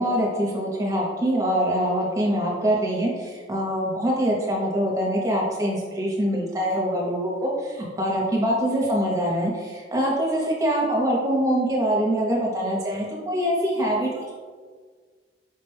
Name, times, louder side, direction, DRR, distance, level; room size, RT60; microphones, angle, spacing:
voice 1, 0.0-14.3, equal, 15° right, -3 dB, 0.7 m, -24 dB
4.6 x 2.2 x 3.2 m, 1.5 s
head